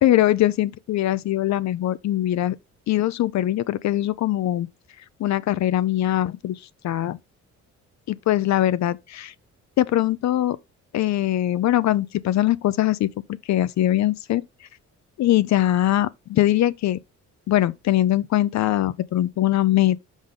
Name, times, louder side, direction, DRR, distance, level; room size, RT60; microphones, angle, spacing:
voice 1, 0.0-2.6 2.9-4.7 5.2-6.6 6.8-7.2 8.1-9.3 9.8-10.6 10.9-13.1 13.5-14.4 15.2-17.0 17.5-20.0, left 13 dB, 65° left, 0.6 m, -21 dB
6.3 x 5.1 x 3.7 m
cardioid pair, 90°, 30 cm